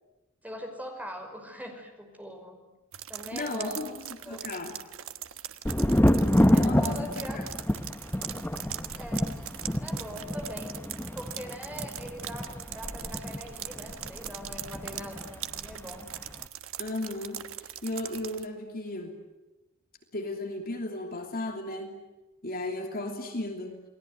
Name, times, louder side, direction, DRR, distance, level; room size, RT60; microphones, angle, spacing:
voice 1, 0.4-2.6 3.1-3.9 4.2-4.7 6.6-7.4 9.0-9.3 9.8-10.7 11.1-16.0, equal, 5° right, 4 dB, 5.6 m, -41 dB
sound 1, 2.9-18.4, right 11 dB, 70° right, 1.3 m, -41 dB
voice 2, 3.3-4.8 6.5-7.4 16.8-17.4 17.8-19.1 20.1-22.0 22.4-23.8, left 2 dB, 45° left, 4 dB, 3.1 m, -35 dB
Thunder, 5.7-15.3 15.6-16.3, left 1 dB, 10° left, 0.9 m, -28 dB
29.0 x 21.0 x 9.6 m, 1.1 s
head